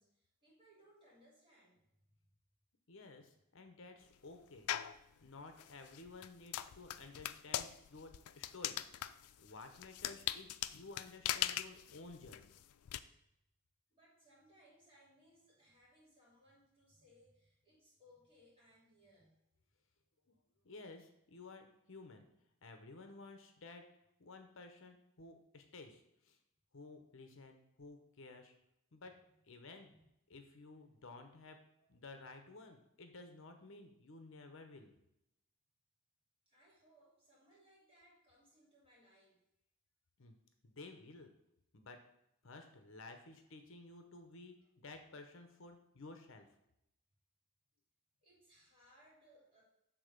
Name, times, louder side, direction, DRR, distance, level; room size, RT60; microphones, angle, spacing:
voice 1, 0.0-1.8 13.9-19.3 29.8-30.0 36.4-39.4 48.2-49.6, equal, 25° right, -6 dB, 3.0 m, -67 dB
voice 2, 2.9-4.7 5.2-12.6 20.3-20.4 20.6-22.3 22.6-23.8 24.2-26.4 26.7-28.5 28.9-29.1 29.4-29.9 30.3-34.9 40.2-40.4 40.6-41.3 41.7-42.0 42.4-46.5, left 3 dB, 60° left, 6 dB, 0.8 m, -54 dB
sound 1, 4.7-5.0 5.6-13.0, left 12 dB, 90° left, 0.4 m, -40 dB
7.1 x 3.8 x 6.4 m, 0.83 s
head